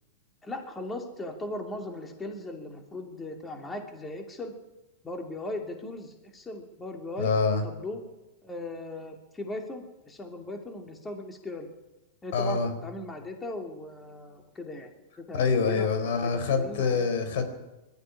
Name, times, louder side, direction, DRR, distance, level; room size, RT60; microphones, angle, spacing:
voice 1, 0.4-4.5 5.0-7.3 7.6-8.0 8.4-11.7 12.2-14.9 15.2-15.9 16.2-17.4, left 2 dB, 15° left, 4 dB, 2.8 m, -38 dB
voice 2, 7.2-7.6 12.3-12.7 15.3-17.5, left 5 dB, 65° left, 8 dB, 4.6 m, -25 dB
21.0 x 13.5 x 10.0 m, 1.0 s
hypercardioid pair, 125°, 0 cm